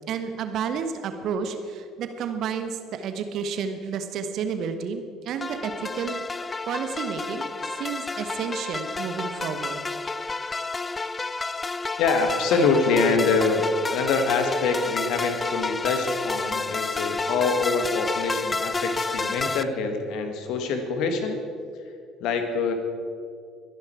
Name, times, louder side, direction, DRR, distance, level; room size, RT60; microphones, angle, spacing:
voice 1, 0.1-6.2 6.7-7.5 7.8-9.8, right 6 dB, 50° right, 8 dB, 1.3 m, -31 dB
sound 1, 5.4-19.6, left 3 dB, 20° left, 0.5 m, -30 dB
voice 2, 12.0-21.4 22.2-22.7, left 4 dB, 60° left, 6 dB, 1.9 m, -25 dB
22.5 x 10.5 x 4.7 m, 2.4 s
figure-of-eight pair, 55°, 0 cm